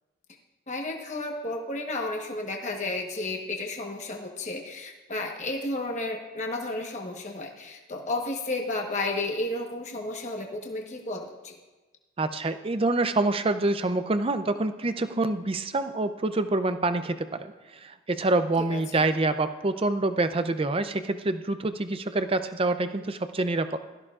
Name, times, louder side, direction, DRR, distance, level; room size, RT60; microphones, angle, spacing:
voice 1, 0.7-11.6 18.7-19.1, left 2 dB, 35° left, 1 dB, 1.2 m, -32 dB
voice 2, 12.2-17.5 17.8-23.8, right 2 dB, 25° right, 10 dB, 0.5 m, -26 dB
16.5 x 13.5 x 2.5 m, 1.2 s
head